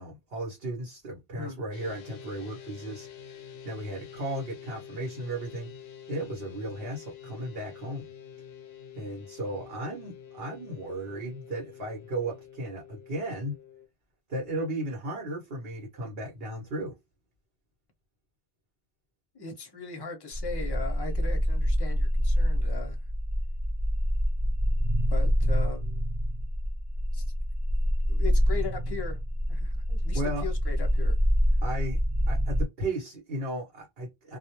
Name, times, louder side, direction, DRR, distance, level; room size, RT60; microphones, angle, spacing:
voice 1, 0.0-3.1 3.6-5.7 6.1-8.0 8.9-13.6 14.3-17.0 30.1-30.5 31.6-32.0 32.3-34.4, right 1 dB, 70° right, 1.1 m, -35 dB
sound 1, 1.7-13.9, left 9 dB, 80° left, 0.8 m, -47 dB
voice 2, 19.3-23.0 25.1-26.1 27.1-27.2 28.1-29.2 29.5-31.2, left 5 dB, 30° left, 0.6 m, -38 dB
sound 2, 20.3-32.6, equal, 40° right, 0.5 m, -26 dB
2.3 x 2.0 x 2.8 m
omnidirectional pair, 1.0 m